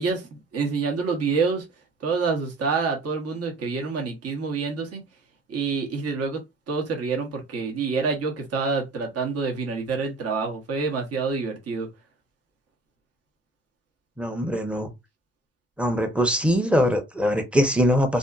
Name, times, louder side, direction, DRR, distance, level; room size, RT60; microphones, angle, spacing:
voice 1, 0.0-1.6 2.0-5.0 5.5-6.4 6.7-11.9, right 4 dB, 55° right, 1.0 m, -27 dB
voice 2, 14.2-14.9 15.8-18.2, equal, 5° right, 0.6 m, -22 dB
2.6 x 2.5 x 2.3 m
cardioid pair, 90°, 30 cm